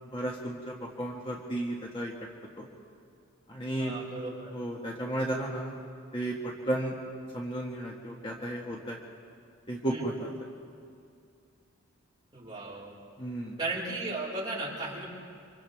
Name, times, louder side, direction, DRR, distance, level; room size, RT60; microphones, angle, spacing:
voice 1, 0.1-2.1 2.6-2.7 3.5-4.0 4.5-5.8 6.1-7.0 7.3-9.0 9.7-10.3 13.2-13.5, right 1 dB, 25° left, -2 dB, 1.6 m, -33 dB
voice 2, 3.8-4.5 9.9-10.1 12.3-12.9 13.6-15.1, right 2 dB, 20° right, -6 dB, 5.3 m, -35 dB
29.5 x 26.0 x 3.6 m, 2.4 s
head